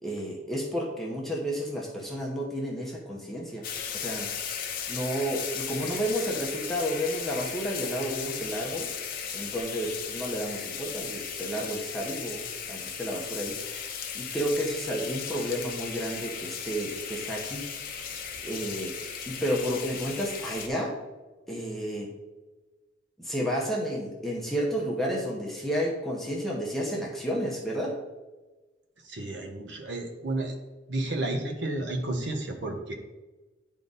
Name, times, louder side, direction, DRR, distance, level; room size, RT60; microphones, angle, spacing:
voice 1, 0.0-3.7 3.9-4.3 4.9-8.9 9.3-17.7 18.4-18.9 19.3-20.9 21.5-22.1 23.2-28.0, equal, ahead, -3 dB, 1.0 m, -31 dB
sound 1, 3.6-20.7, left 7 dB, 45° left, 0.7 m, -36 dB
voice 2, 29.0-30.5 30.9-32.9, right 2 dB, 65° right, 2 dB, 1.1 m, -32 dB
10.0 x 3.7 x 4.0 m, 1.2 s
head